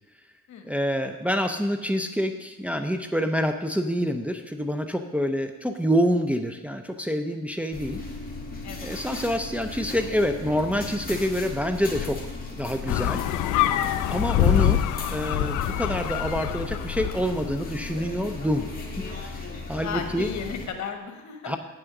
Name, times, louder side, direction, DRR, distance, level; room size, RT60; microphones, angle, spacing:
voice 1, 0.6-8.0 8.8-12.2 12.6-13.3 14.1-14.8 15.1-18.7 19.0-19.3 19.7-20.3 21.4-21.6, equal, 5° right, 6 dB, 0.6 m, -27 dB
sound 1, 7.7-20.7, left 3 dB, 30° left, 2.4 m, -36 dB
sound 2, 12.9-17.4, left 12 dB, 90° left, 0.6 m, -25 dB
voice 2, 19.8-21.5, left 6 dB, 65° left, 5 dB, 1.4 m, -34 dB
9.0 x 6.4 x 5.9 m, 1.1 s
cardioid pair, 90°, 30 cm